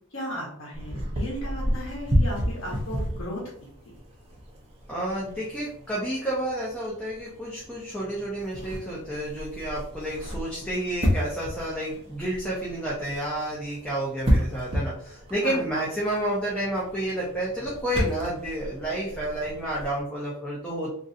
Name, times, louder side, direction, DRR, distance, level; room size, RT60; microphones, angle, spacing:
voice 1, 0.1-3.5 15.4-15.6, equal, 65° left, -2 dB, 1.0 m, -35 dB
sound 1, 0.7-20.0, equal, 30° right, 0.7 m, -32 dB
voice 2, 4.9-20.9, right 1 dB, 5° left, -7 dB, 0.7 m, -30 dB
3.0 x 2.6 x 2.6 m, 0.65 s
head